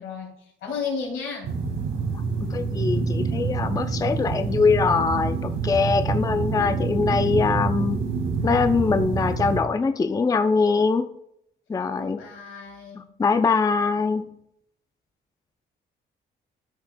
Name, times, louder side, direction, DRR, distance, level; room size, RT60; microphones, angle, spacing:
voice 1, 0.0-1.6 12.0-13.1, left 5 dB, 85° left, 0 dB, 3.0 m, -33 dB
sound 1, 1.4-9.6, right 4 dB, 75° right, 1.9 m, -27 dB
voice 2, 2.4-8.0 8.4-11.1 11.7-12.2 13.2-14.2, left 4 dB, 20° left, 9 dB, 0.4 m, -22 dB
13.0 x 6.0 x 2.2 m, 0.75 s
cardioid pair, 90°, 20 cm